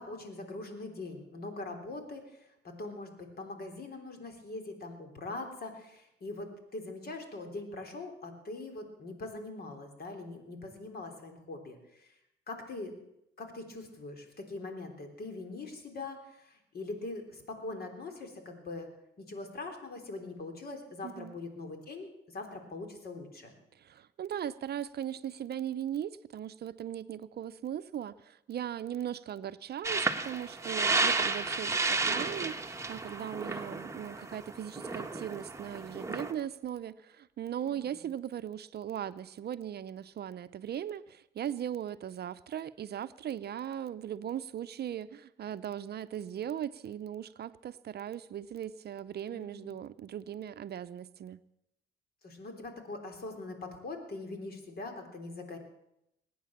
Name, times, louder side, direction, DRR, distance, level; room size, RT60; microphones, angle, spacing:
voice 1, 0.0-2.4 2.6-12.1 12.5-12.9 13.4-18.9 19.2-23.5 37.6-38.0 49.3-49.7 52.2-55.6, left 2 dB, 50° left, 5 dB, 3.6 m, -42 dB
voice 2, 21.0-21.4 23.7-51.4, right 10 dB, 55° right, 13 dB, 0.6 m, -38 dB
sound 1, 29.8-36.3, right 3 dB, 15° right, 1.3 m, -32 dB
21.0 x 9.4 x 7.3 m, 0.84 s
cardioid pair, 90°, 20 cm